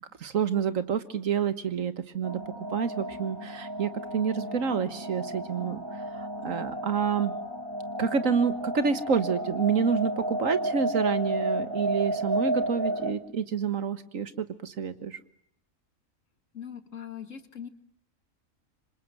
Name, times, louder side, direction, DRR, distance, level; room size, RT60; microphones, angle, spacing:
voice 1, 0.2-7.3 8.0-15.2, right 6 dB, 70° right, 12 dB, 1.8 m, -28 dB
sound 1, 2.2-13.1, right 1 dB, 20° right, 2.2 m, -32 dB
voice 2, 16.5-17.7, left 8 dB, 65° left, 9 dB, 2.2 m, -41 dB
26.5 x 26.0 x 7.8 m, 0.68 s
omnidirectional pair, 1.4 m